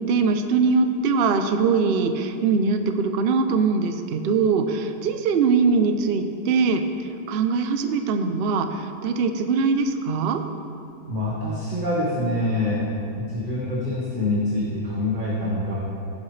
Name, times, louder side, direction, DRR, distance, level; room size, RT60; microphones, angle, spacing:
voice 1, 0.1-6.8 7.3-10.4, right 4 dB, 65° right, 7 dB, 0.5 m, -22 dB
voice 2, 11.0-15.8, left 1 dB, 35° right, -6 dB, 1.4 m, -25 dB
15.0 x 7.4 x 3.3 m, 2.6 s
omnidirectional pair, 1.7 m